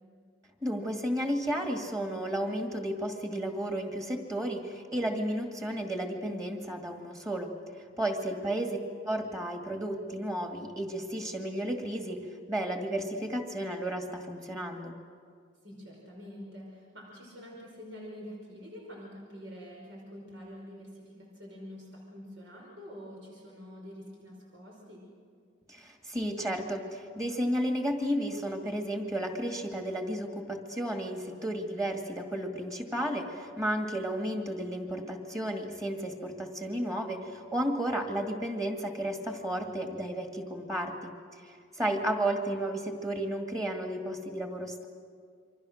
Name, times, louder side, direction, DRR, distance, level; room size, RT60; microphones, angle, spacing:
voice 1, 0.6-7.5 7.8-8.8 9.1-12.2 12.5-14.9 25.7-44.8, right 1 dB, 20° right, 3 dB, 2.1 m, -33 dB
voice 2, 15.6-25.1 41.8-41.9, equal, 90° right, -2 dB, 5.3 m, -46 dB
27.5 x 24.5 x 6.5 m, 2.1 s
head